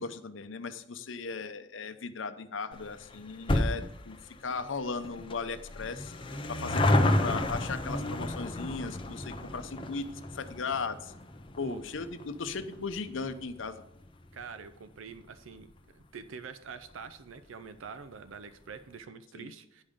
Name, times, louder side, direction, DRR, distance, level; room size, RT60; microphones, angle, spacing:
voice 1, 0.0-4.2 4.4-6.1 6.5-10.1 10.3-11.1 11.6-13.8 19.3-19.5, left 4 dB, 75° left, 10 dB, 0.7 m, -37 dB
sound 1, 2.7-15.5 15.8-15.9 16.7-16.8 17.0-17.1 17.4-17.5, left 1 dB, 25° left, 0.7 m, -32 dB
voice 2, 14.3-19.8, right 5 dB, 85° right, 12 dB, 0.5 m, -45 dB
9.9 x 5.5 x 5.0 m, 0.81 s
head